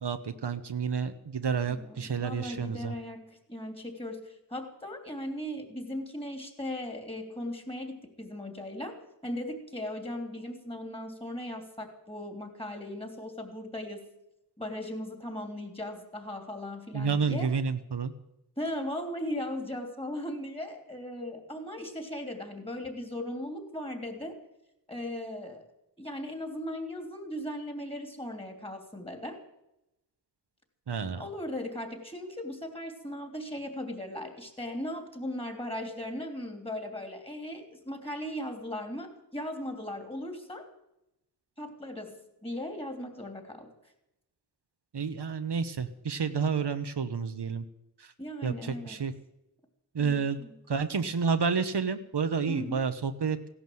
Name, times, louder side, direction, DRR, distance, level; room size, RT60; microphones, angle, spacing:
voice 1, 0.0-2.9 16.9-18.1 30.9-31.2 44.9-47.6 48.0-48.1 48.4-49.1 49.9-50.4 50.7-53.4, right 5 dB, 75° right, 9 dB, 1.0 m, -30 dB
voice 2, 1.6-9.0 9.2-14.0 14.6-17.5 18.6-24.4 24.9-25.6 26.0-29.4 31.2-40.7 41.6-43.7 48.2-49.0 50.0-50.5 52.5-52.9, left 1 dB, 15° left, 5 dB, 3.2 m, -38 dB
16.5 x 11.5 x 7.7 m, 0.87 s
wide cardioid pair, 75°, 40 cm